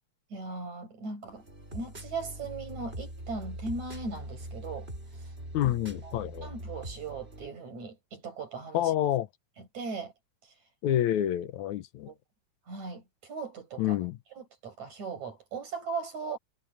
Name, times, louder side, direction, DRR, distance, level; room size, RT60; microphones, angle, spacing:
voice 1, 0.3-1.5 1.7-4.9 5.6-5.7 6.0-6.1 6.4-8.9 9.7-10.1 12.1-12.2 12.7-14.0 14.4-16.4, right 4 dB, 75° right, 7.6 m, -38 dB
sound 1, 1.3-7.5, right 1 dB, 20° right, 5.9 m, -42 dB
voice 2, 5.5-6.5 8.7-9.3 10.8-12.1 13.8-14.2, left 12 dB, 80° left, 2.3 m, -28 dB
omnidirectional pair, 3.3 m